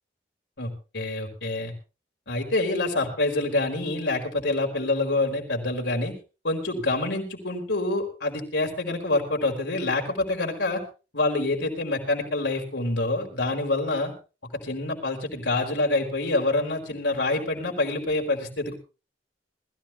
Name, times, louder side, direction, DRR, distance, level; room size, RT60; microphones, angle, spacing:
voice 1, 0.6-1.7 2.3-6.1 6.4-10.8 11.1-14.1 14.5-18.8, left 2 dB, 85° left, 1 dB, 4.5 m, -26 dB
20.5 x 14.0 x 3.2 m, 0.33 s
head